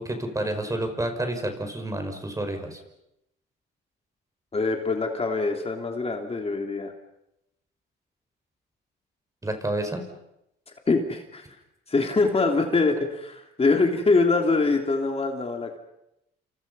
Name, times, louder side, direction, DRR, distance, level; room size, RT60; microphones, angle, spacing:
voice 1, 0.0-2.8 9.4-10.0, right 1 dB, 15° right, 6 dB, 5.5 m, -29 dB
voice 2, 4.5-6.9 10.9-11.4 11.9-15.8, left 3 dB, 30° left, 3 dB, 3.2 m, -24 dB
29.5 x 27.5 x 5.6 m, 0.84 s
cardioid pair, 90°, 20 cm